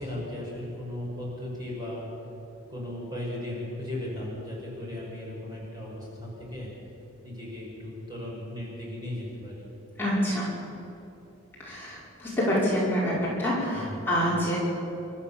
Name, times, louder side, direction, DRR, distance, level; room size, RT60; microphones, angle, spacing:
voice 1, 0.0-2.1 2.7-6.7 7.2-9.7 13.7-14.1, left 1 dB, 20° right, -5 dB, 5.7 m, -36 dB
voice 2, 10.0-10.5 11.6-14.6, equal, 10° left, -8 dB, 5.3 m, -27 dB
28.0 x 13.5 x 7.2 m, 2.9 s
head